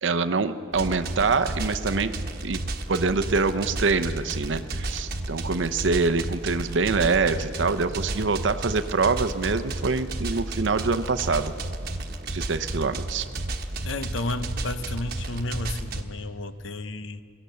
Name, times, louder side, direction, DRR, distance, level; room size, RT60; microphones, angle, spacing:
voice 1, 0.0-2.1 2.4-2.6 2.9-11.5 12.3-13.3, right 4 dB, 65° right, 10 dB, 0.7 m, -25 dB
sound 1, 0.7-16.0, right 2 dB, 50° right, 1.2 m, -32 dB
voice 2, 13.8-17.2, left 2 dB, 75° left, 11 dB, 0.8 m, -32 dB
22.5 x 17.0 x 6.8 m, 2.2 s
head